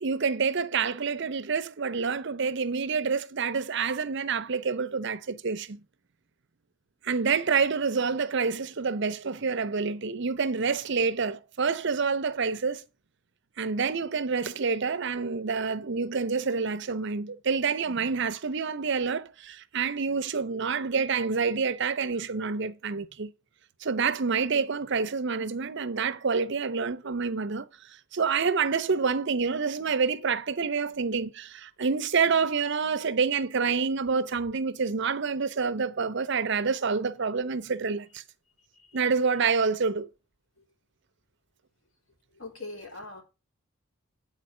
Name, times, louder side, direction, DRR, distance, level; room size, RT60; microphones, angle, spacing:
voice 1, 0.0-5.8 7.0-12.8 13.6-23.3 23.8-27.7 28.1-38.2 38.9-40.1, right 5 dB, 60° right, 0.7 m, -27 dB
voice 2, 42.3-43.2, left 2 dB, 75° left, 3.6 m, -42 dB
9.0 x 4.4 x 7.4 m
head